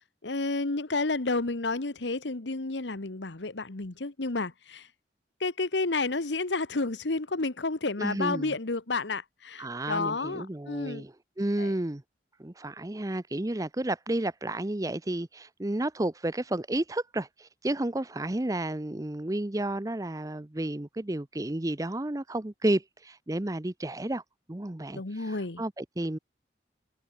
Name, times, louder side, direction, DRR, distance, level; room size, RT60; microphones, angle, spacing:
voice 1, 0.0-4.9 5.4-11.0 11.6-11.7 24.9-25.6, left 3 dB, 90° left, 1.3 m, -31 dB
voice 2, 8.0-8.5 9.6-12.0 12.4-24.2 24.5-26.2, right 1 dB, 20° right, 0.7 m, -31 dB
head